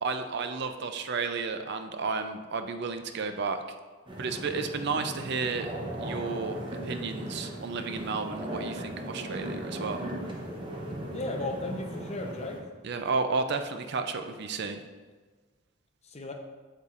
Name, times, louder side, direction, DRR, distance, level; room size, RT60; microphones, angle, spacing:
voice 1, 0.0-3.6 4.2-5.7 6.0-10.0 12.8-14.8, right 4 dB, 50° right, 7 dB, 0.4 m, -32 dB
sound 1, 4.1-12.6, right 1 dB, 25° right, 0.8 m, -38 dB
voice 2, 11.1-12.6 16.1-16.3, left 2 dB, 30° left, 2 dB, 0.7 m, -35 dB
8.0 x 7.3 x 2.5 m, 1.4 s
head